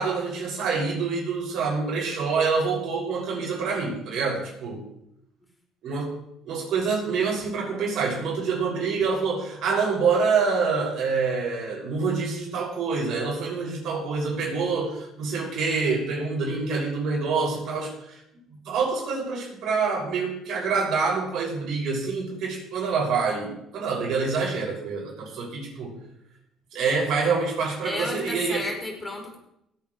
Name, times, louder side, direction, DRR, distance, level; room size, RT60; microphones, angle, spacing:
voice 1, 0.0-4.8 5.8-6.1 6.4-18.2 18.6-26.0 26.7-28.6, right 4 dB, 65° right, -2 dB, 6.4 m, -26 dB
voice 2, 27.8-29.4, left 1 dB, 15° left, 1 dB, 4.6 m, -32 dB
19.5 x 8.6 x 4.8 m, 0.79 s
cardioid pair, 95°, 0 cm